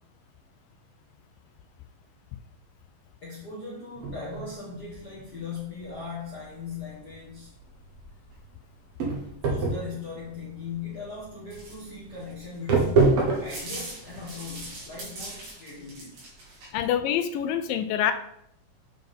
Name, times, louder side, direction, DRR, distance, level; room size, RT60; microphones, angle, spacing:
voice 1, 3.2-7.6 9.4-16.2 16.8-16.9, left 5 dB, 55° left, -7 dB, 1.1 m, -39 dB
sound 1, 3.9-15.4, right 3 dB, 55° right, 1.7 m, -29 dB
sound 2, 11.5-16.7, right 2 dB, 80° right, 4.6 m, -41 dB
voice 2, 16.7-18.1, left 9 dB, 80° left, 9 dB, 2.1 m, -26 dB
8.6 x 4.6 x 3.7 m, 0.74 s
omnidirectional pair, 4.3 m